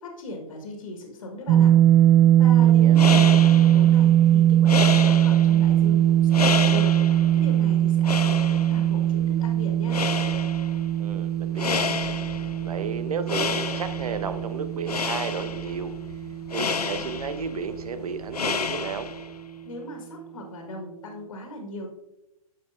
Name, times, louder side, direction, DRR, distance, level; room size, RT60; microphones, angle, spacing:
voice 1, 0.0-1.7 2.4-6.9 7.3-10.0 19.6-21.9, left 1 dB, 65° left, 2 dB, 1.7 m, -38 dB
sound 1, 1.5-17.4, right 11 dB, 30° right, 0.4 m, -20 dB
voice 2, 2.6-3.0 11.0-11.9 12.6-16.0 16.5-19.1, right 5 dB, 75° right, 11 dB, 0.8 m, -33 dB
sound 2, 2.7-19.4, left 5 dB, 90° left, 0.4 m, -31 dB
10.5 x 6.5 x 2.6 m, 0.91 s
figure-of-eight pair, 110°, 19 cm